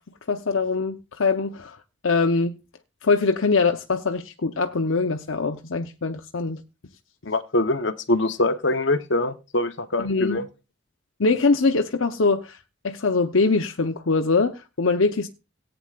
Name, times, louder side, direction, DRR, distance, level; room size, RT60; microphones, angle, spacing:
voice 1, 0.3-1.8 2.0-2.6 3.0-6.6 10.0-10.4 11.2-12.6 12.8-15.3, left 4 dB, 85° left, 0.8 m, -23 dB
voice 2, 7.2-10.5, left 2 dB, 65° left, 1.0 m, -24 dB
18.0 x 8.9 x 2.4 m
head